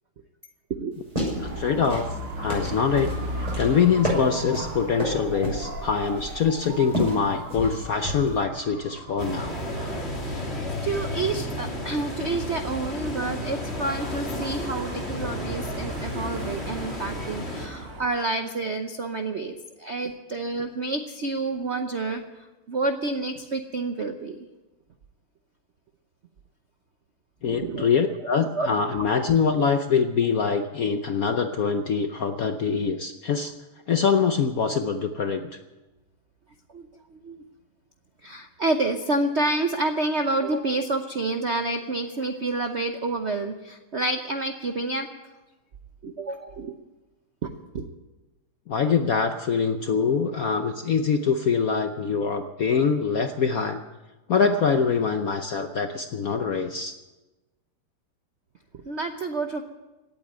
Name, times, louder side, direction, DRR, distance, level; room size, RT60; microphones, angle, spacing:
sound 1, 0.9-8.4, equal, 15° right, 6.6 m, -32 dB
Dog / Motorcycle, 1.2-18.0, right 1 dB, 85° right, 3.4 m, -38 dB
voice 1, 1.4-2.1 2.4-9.6 27.4-33.5 33.9-35.5 48.7-53.8 54.3-56.9, left 6 dB, 65° left, 7 dB, 0.9 m, -24 dB
sound 2, 9.2-17.7, left 1 dB, 30° left, 2.6 m, -33 dB
voice 2, 10.2-10.5 10.8-22.2 22.7-24.4 27.5-27.9 28.5-28.7 36.7-37.4 38.2-45.1 46.0-46.7 47.4-47.9 58.9-59.6, right 2 dB, 60° right, 6 dB, 0.7 m, -29 dB
17.5 x 8.6 x 9.4 m, 1.1 s
omnidirectional pair, 2.4 m